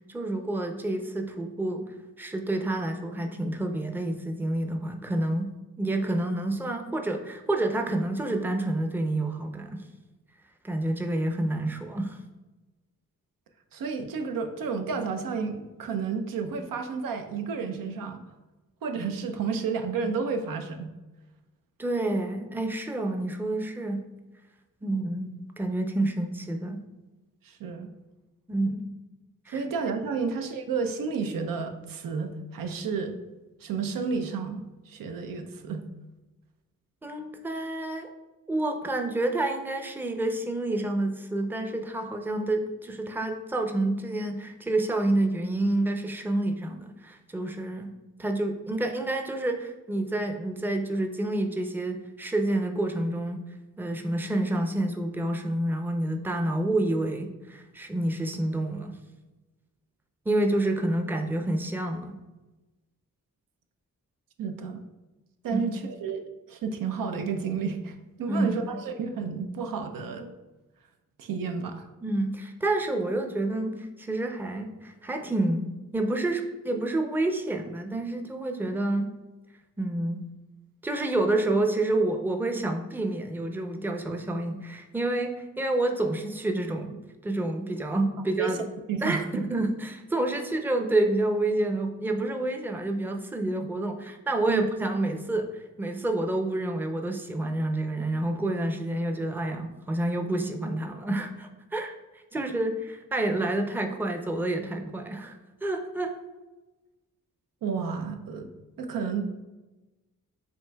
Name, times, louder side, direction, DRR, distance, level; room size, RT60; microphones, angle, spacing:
voice 1, 0.1-1.9 2.2-5.5 5.8-9.8 10.6-12.2 21.8-24.1 24.8-26.8 28.5-28.9 29.5-29.6 37.0-38.1 38.5-47.9 48.2-53.4 53.8-59.0 60.3-62.2 65.5-65.9 68.3-68.8 72.0-79.1 79.8-80.2 80.8-88.6 89.0-95.5 95.8-101.9 102.3-106.2, right 2 dB, 5° right, 5 dB, 0.4 m, -28 dB
voice 2, 13.7-18.2 18.8-20.9 27.4-27.9 29.5-33.1 33.6-35.8 64.4-64.8 65.4-70.3 71.2-71.9 88.2-88.6 88.9-89.3 94.5-94.7 107.6-108.5 108.8-109.2, right 5 dB, 85° right, 6 dB, 0.5 m, -31 dB
7.7 x 2.6 x 2.2 m, 1.1 s
cardioid pair, 70°, 33 cm